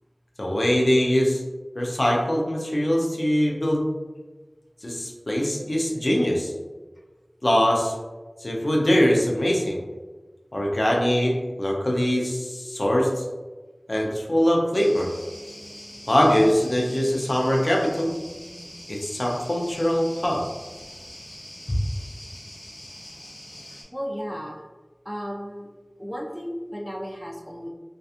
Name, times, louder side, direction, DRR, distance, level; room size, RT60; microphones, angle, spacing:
voice 1, 0.4-1.4 1.8-3.9 4.8-6.5 7.4-8.0 8.4-9.8 10.5-13.2 13.9-15.1 16.1-18.1 18.9-20.4 21.7-21.8, equal, 55° left, -1 dB, 0.5 m, -22 dB
sound 1, 14.7-23.8, equal, 75° left, 1.0 m, -43 dB
voice 2, 23.9-24.6 25.1-25.7 26.0-27.7, equal, ahead, -2 dB, 0.4 m, -34 dB
2.7 x 2.2 x 2.4 m, 1.3 s
wide cardioid pair, 45°, 0 cm